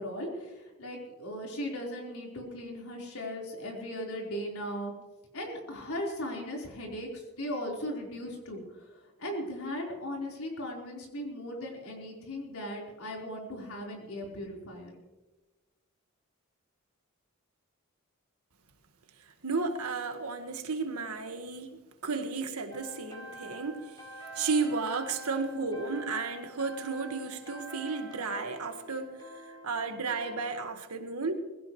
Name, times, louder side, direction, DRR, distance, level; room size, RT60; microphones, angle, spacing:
voice 1, 0.0-4.9 5.3-14.9, equal, 75° left, 4.3 m, -38 dB
voice 2, 19.4-24.1 24.3-31.3, right 4 dB, 85° right, 1.7 m, -33 dB
sound 1, 22.7-30.5, right 2 dB, 20° left, 4.4 m, -47 dB
21.0 x 16.0 x 3.2 m
head